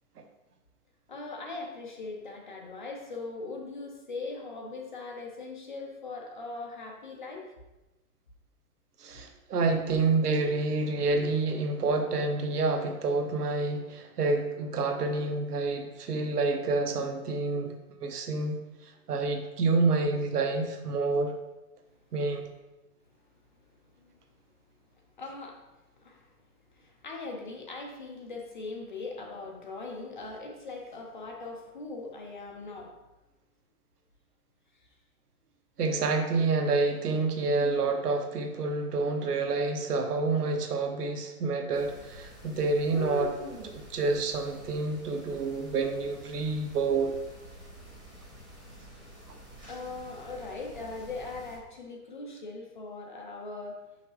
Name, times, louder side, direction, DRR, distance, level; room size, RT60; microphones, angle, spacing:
voice 1, 1.1-7.5 9.9-10.0 10.4-10.5 11.1-11.2 24.0-24.1 25.2-25.6 26.0-26.3 26.7-32.9 49.7-53.8, left 3 dB, 35° left, 1 dB, 0.7 m, -40 dB
voice 2, 9.0-17.7 18.0-21.3 22.1-22.5 35.8-43.4 43.6-47.1 49.3-49.4, right 3 dB, 85° right, 5 dB, 1.1 m, -28 dB
sound 1, 41.7-51.6, left 1 dB, 10° right, 1.3 m, -46 dB
5.7 x 5.6 x 3.2 m, 1.0 s
hypercardioid pair, 175°, 45 cm